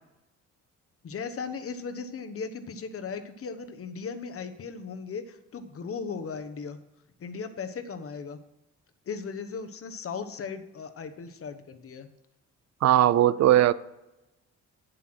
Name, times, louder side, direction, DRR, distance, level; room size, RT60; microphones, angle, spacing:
voice 1, 1.0-6.8 7.2-8.4 9.1-12.1, left 5 dB, 50° left, 1.1 m, -37 dB
voice 2, 12.8-13.7, right 12 dB, 60° right, 0.5 m, -19 dB
8.3 x 7.8 x 6.1 m
cardioid pair, 90°, 30 cm